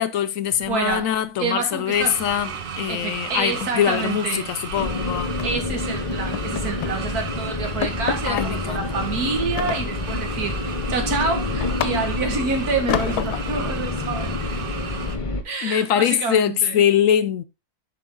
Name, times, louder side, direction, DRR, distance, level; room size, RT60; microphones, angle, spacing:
voice 1, 0.0-5.3 8.2-8.8 15.6-17.4, left 9 dB, 70° left, 0.9 m, -22 dB
sound 1, 0.6-1.5 1.7-2.0 2.3-2.5 2.8-2.9 3.3-4.9 5.4-5.7 6.1-7.0 7.4-7.5 7.8-8.5 9.6-10.3 10.7-12.3 12.9-13.6, left 9 dB, 85° left, 1.3 m, -30 dB
voice 2, 0.7-1.1 1.4-2.2 2.9-4.5 5.4-10.6 10.9-14.3 15.4-16.8, right 4 dB, 75° right, 2.1 m, -27 dB
sound 2, 1.9-15.2, right 6 dB, 45° right, 0.8 m, -35 dB
sound 3, 4.7-15.4, left 3 dB, 30° left, 0.7 m, -28 dB
7.5 x 5.3 x 3.7 m
omnidirectional pair, 1.6 m